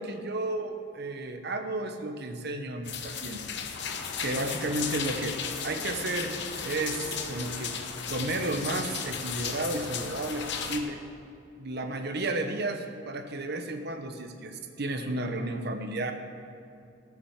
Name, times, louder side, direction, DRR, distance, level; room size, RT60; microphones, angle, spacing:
voice 1, 0.0-3.4 4.2-5.4 5.6-6.4 6.6-7.8 8.1-11.0 11.6-16.1, right 2 dB, 50° right, 6 dB, 1.0 m, -32 dB
sound 1, 2.8-10.8, left 7 dB, 55° left, 0.9 m, -36 dB
sound 2, 3.7-10.8, left 2 dB, 80° left, 1.7 m, -43 dB
14.5 x 6.3 x 7.2 m, 2.6 s
head